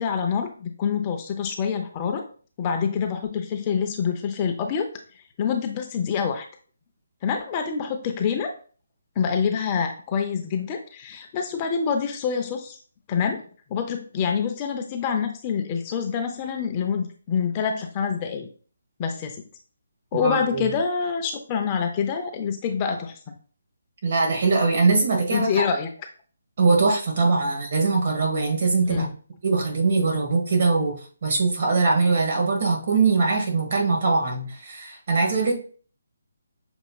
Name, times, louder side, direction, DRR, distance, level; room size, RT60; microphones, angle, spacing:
voice 1, 0.0-2.3 2.6-4.9 5.4-6.5 7.2-8.5 9.2-12.8 13.1-13.4 13.7-18.5 19.0-19.4 20.1-23.3 25.3-25.9 28.9-29.1, left 6 dB, 25° left, 4 dB, 0.6 m, -26 dB
voice 2, 20.1-20.7 24.0-25.7 26.6-29.1 29.4-35.5, right 4 dB, 50° right, 1 dB, 1.4 m, -22 dB
6.2 x 2.8 x 2.3 m, 0.41 s
figure-of-eight pair, 155°, 0 cm